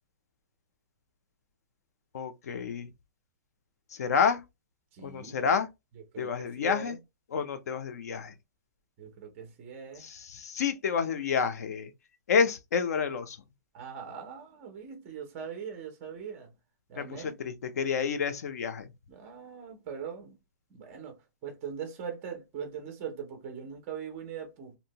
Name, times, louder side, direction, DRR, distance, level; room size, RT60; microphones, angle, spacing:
voice 1, 2.1-2.9 3.9-4.4 5.0-5.7 6.2-7.0 7.3-8.3 10.0-11.9 12.3-13.4 17.0-18.9, left 6 dB, 55° left, 0.5 m, -29 dB
voice 2, 4.9-5.5 5.9-7.0 9.0-10.1 13.7-16.5 16.9-17.5 19.1-20.4 20.7-24.8, right 7 dB, 15° right, 0.4 m, -41 dB
2.6 x 2.1 x 2.7 m
hypercardioid pair, 180°, 10 cm